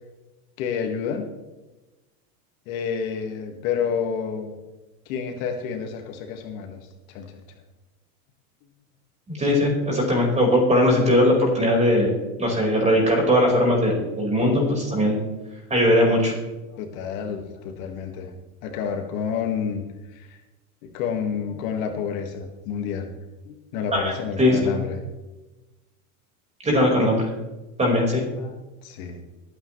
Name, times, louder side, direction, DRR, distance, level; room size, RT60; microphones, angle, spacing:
voice 1, 0.6-1.3 2.7-4.5 5.1-6.8 7.1-7.3 16.7-18.3 18.6-19.8 20.1-20.4 20.8-23.1 23.5-25.0 28.4-28.5 28.8-29.2, left 7 dB, 60° left, 4 dB, 2.0 m, -29 dB
voice 2, 9.3-12.1 12.4-15.2 15.7-16.3 23.9-24.1 24.4-24.7 26.6-27.3 27.8-28.2, left 1 dB, 15° right, -1 dB, 4.9 m, -19 dB
24.0 x 9.1 x 3.3 m, 1.1 s
supercardioid pair, 130°, 45 cm